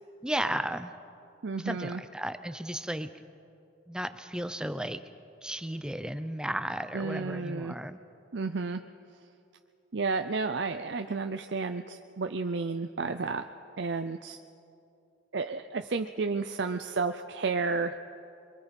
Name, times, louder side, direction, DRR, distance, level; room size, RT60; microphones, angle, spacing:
voice 1, 0.2-0.9 1.6-3.1 3.9-5.0 5.4-8.0, right 1 dB, 5° right, 10 dB, 0.6 m, -34 dB
voice 2, 1.4-2.0 6.9-7.8 8.3-8.8 9.9-13.5 13.8-14.4 15.3-18.0, right 4 dB, 65° right, 7 dB, 0.6 m, -32 dB
24.0 x 23.5 x 5.3 m, 2.6 s
head